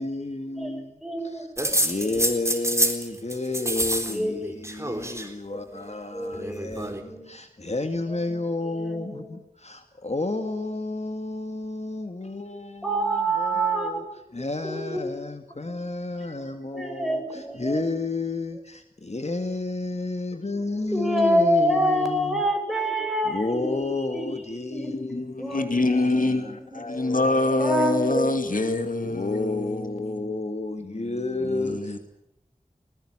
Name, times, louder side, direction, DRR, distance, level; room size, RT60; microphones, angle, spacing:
voice 1, 0.0-0.8 1.8-6.9 7.3-14.0 14.3-22.4 23.3-25.5 25.8-27.6 29.0-31.8, left 2 dB, 50° left, 1.9 m, -31 dB
voice 2, 1.0-1.4 1.8-2.1 4.1-4.6 5.5-5.6 6.1-7.3 8.7-9.3 12.8-14.0 14.6-15.1 16.7-17.9 20.9-23.8 24.1-24.2 24.7-24.9 25.4-25.7 26.0-26.4 27.5-28.3, right 1 dB, ahead, 6.5 m, -26 dB
sound 1, 1.6-3.1 3.3-4.2 4.4-5.3 6.3-7.0, right 1 dB, 20° right, 3.8 m, -26 dB
voice 3, 25.2-30.3 31.4-32.0, left 2 dB, 70° left, 2.4 m, -25 dB
20.0 x 20.0 x 10.0 m
wide cardioid pair, 55°, 15 cm